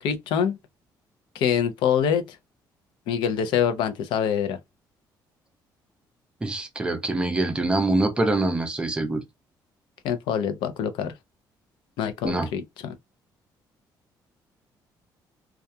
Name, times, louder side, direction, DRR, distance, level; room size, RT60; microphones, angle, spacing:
voice 1, 0.0-0.6 1.3-2.4 3.1-4.6 10.0-11.1 12.0-12.9, left 8 dB, 85° left, 0.5 m, -25 dB
voice 2, 6.4-9.2 12.2-12.5, right 2 dB, 10° right, 0.5 m, -24 dB
2.3 x 2.2 x 2.6 m
cardioid pair, 180°, 8 cm